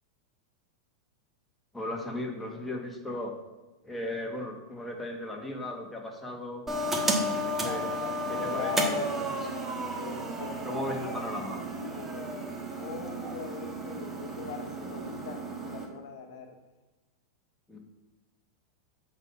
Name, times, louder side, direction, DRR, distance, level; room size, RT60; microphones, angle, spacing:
voice 1, 1.7-3.3 3.8-6.6 7.3-7.8 8.3-8.7 10.6-11.6 17.7-17.8, left 1 dB, 5° left, 0 dB, 1.6 m, -36 dB
sound 1, 6.7-15.8, right 1 dB, 15° right, 1.3 m, -33 dB
voice 2, 7.1-9.6 10.0-10.8 11.1-11.2 11.6-16.6, left 5 dB, 70° left, 4 dB, 1.1 m, -41 dB
7.9 x 4.1 x 5.6 m, 1.2 s
hypercardioid pair, 110°, 2 cm